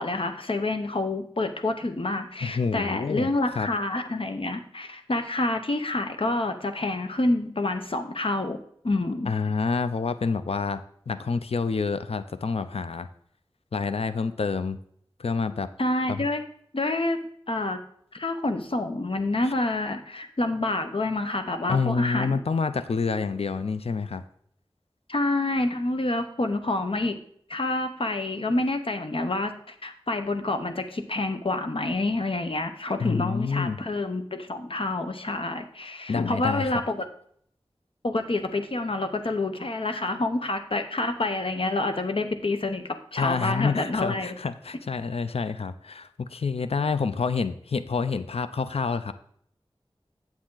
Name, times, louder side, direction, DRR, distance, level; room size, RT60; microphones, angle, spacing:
voice 1, 0.0-8.6 8.8-9.3 15.8-16.4 16.7-17.8 18.1-22.4 25.1-27.1 27.5-37.1 38.0-44.4, left 2 dB, 65° left, 7 dB, 0.9 m, -28 dB
voice 2, 2.4-3.7 9.3-13.1 13.7-14.8 15.2-15.7 16.1-16.3 19.4-19.5 21.7-24.2 33.0-33.8 36.1-36.7 43.2-49.1, left 5 dB, 85° left, 12 dB, 0.5 m, -28 dB
8.8 x 7.3 x 3.8 m, 0.64 s
wide cardioid pair, 55°, 10 cm